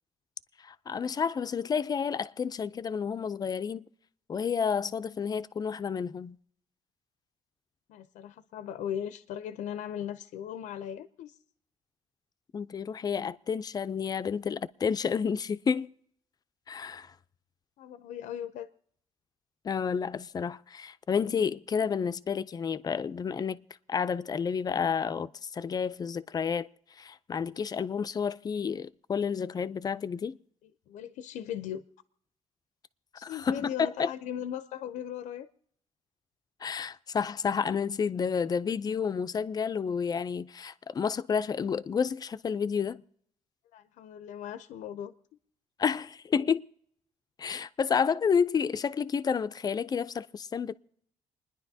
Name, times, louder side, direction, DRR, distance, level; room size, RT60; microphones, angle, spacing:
voice 1, 0.6-3.9 4.3-6.4 12.5-15.9 16.7-17.1 19.6-23.6 23.9-26.7 27.0-30.4 33.2-33.7 34.0-34.1 36.6-43.0 45.8-46.6 47.4-50.7, left 6 dB, 30° left, 0.4 m, -30 dB
voice 2, 7.9-11.4 17.8-18.7 30.6-31.8 33.2-35.5 43.7-45.1, left 10 dB, 90° left, 0.6 m, -38 dB
29.5 x 10.5 x 2.7 m
cardioid pair, 130°, 12 cm